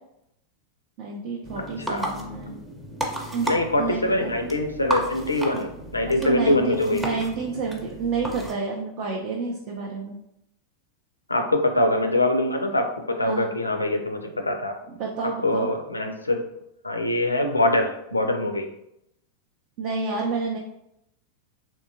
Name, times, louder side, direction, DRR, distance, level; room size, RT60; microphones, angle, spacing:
voice 1, 1.0-2.6 3.3-4.3 6.2-10.2 13.2-13.5 15.0-15.7 19.8-20.6, right 4 dB, 45° right, -1 dB, 0.5 m, -29 dB
sound 1, 1.4-8.5, right 1 dB, 5° right, 0.6 m, -33 dB
voice 2, 3.4-7.2 11.3-14.8 15.4-16.4 16.8-18.7, left 1 dB, 80° left, 5 dB, 0.4 m, -23 dB
3.5 x 2.7 x 2.7 m, 0.80 s
figure-of-eight pair, 90°, 0 cm